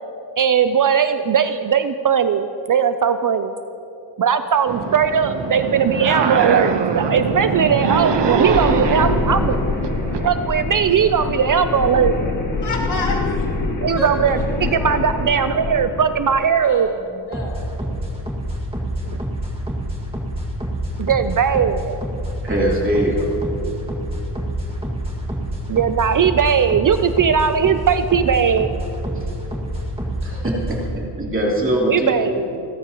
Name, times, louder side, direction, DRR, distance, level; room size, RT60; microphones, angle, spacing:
voice 1, 0.4-3.5 4.2-9.6 10.2-12.1 13.8-16.9 19.1-19.2 21.0-22.0 25.7-28.7 31.9-32.7, right 7 dB, 50° right, 10 dB, 0.5 m, -18 dB
sound 1, 4.7-10.3, right 5 dB, 70° right, 1.1 m, -23 dB
sound 2, 6.9-16.4, left 3 dB, 45° left, 1.9 m, -25 dB
voice 2, 12.6-13.5 14.0-14.8 16.6-17.6, left 2 dB, 70° left, -4 dB, 3.5 m, -29 dB
sound 3, 17.3-30.9, equal, 15° right, 2.0 m, -27 dB
voice 3, 22.4-23.3 30.2-32.2, right 1 dB, 30° right, -4 dB, 3.1 m, -22 dB
29.5 x 14.0 x 3.0 m, 2.8 s
wide cardioid pair, 170°, 43 cm